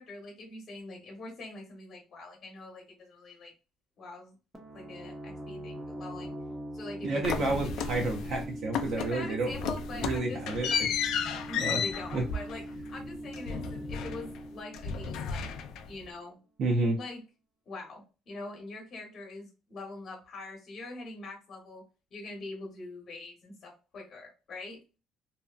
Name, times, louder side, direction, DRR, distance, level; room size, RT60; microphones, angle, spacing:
voice 1, 0.0-3.5 4.0-4.3 4.7-6.3 6.7-7.6 9.0-10.4 11.1-15.5 15.8-16.4 16.8-17.2 17.7-21.8 22.1-24.8, left 2 dB, 40° left, 0 dB, 1.0 m, -43 dB
sound 1, 4.5-16.1, right 1 dB, 15° right, 0.6 m, -42 dB
voice 2, 7.0-9.5 9.9-11.0 11.6-11.8 12.1-12.2 16.6-17.0, right 2 dB, 55° right, 0 dB, 0.6 m, -30 dB
sound 2, 7.2-8.4 8.7-9.2 9.5-14.5 14.7-16.0, left 6 dB, 70° left, 0.3 m, -33 dB
2.7 x 2.2 x 2.3 m, 0.31 s
cardioid pair, 135°, 0 cm